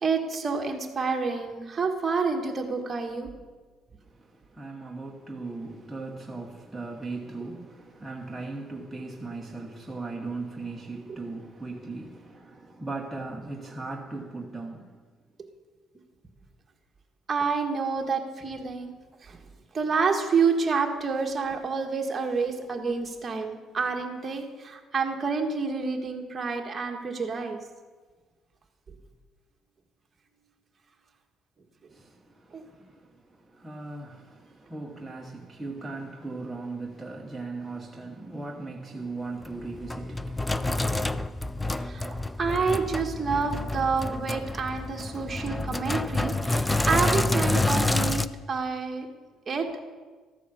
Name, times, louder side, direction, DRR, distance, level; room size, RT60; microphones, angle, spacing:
voice 1, 0.0-3.3 17.3-18.9 19.2-19.4 19.7-27.6 28.9-29.0 32.5-32.6 41.8-49.1 49.5-49.8, right 5 dB, 30° right, 1.7 m, -28 dB
voice 2, 4.0-15.0 31.9-41.3, right 3 dB, 5° right, 1.0 m, -38 dB
Sink (filling or washing), 39.4-48.3, left 2 dB, 10° left, 0.4 m, -28 dB
13.5 x 9.1 x 7.2 m
cardioid pair, 120°, 0 cm